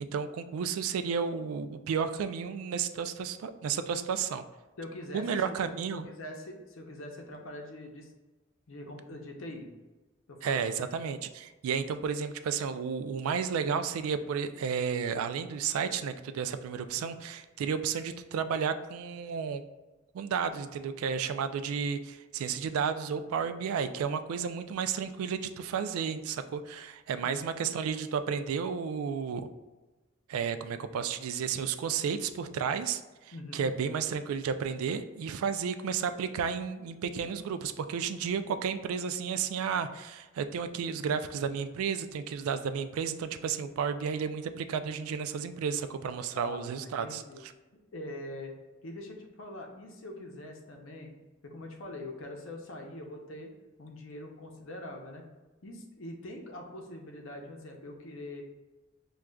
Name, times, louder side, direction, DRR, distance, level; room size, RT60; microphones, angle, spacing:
voice 1, 0.0-4.4 5.1-6.1 10.4-19.6 20.1-29.5 30.3-33.0 33.5-47.5, right 6 dB, 85° right, 10 dB, 0.3 m, -32 dB
voice 2, 4.8-8.1 8.7-9.7 10.3-10.6 17.0-17.2 27.2-27.5 33.3-33.7 46.3-47.4 47.9-48.5 48.8-51.1 51.4-53.5 53.8-55.3 55.6-58.4, left 1 dB, 65° left, 2 dB, 0.6 m, -43 dB
6.1 x 2.3 x 2.2 m, 1.2 s
head